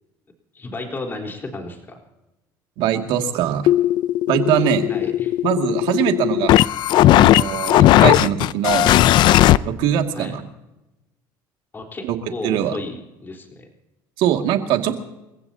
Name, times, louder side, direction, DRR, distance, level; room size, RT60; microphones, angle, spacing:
voice 1, 0.5-2.0 4.9-5.3 10.1-10.3 11.7-13.7, left 2 dB, 25° left, 1 dB, 4.0 m, -33 dB
voice 2, 2.8-3.6 4.3-4.9 5.4-6.6 7.2-8.9 9.6-10.4 12.0-12.2 12.4-12.8 14.2-14.9, right 10 dB, 70° right, 4 dB, 2.2 m, -21 dB
sound 1, 3.7-9.6, left 13 dB, 60° left, 0.5 m, -16 dB
29.0 x 15.5 x 2.8 m, 0.96 s
cardioid pair, 115°, 9 cm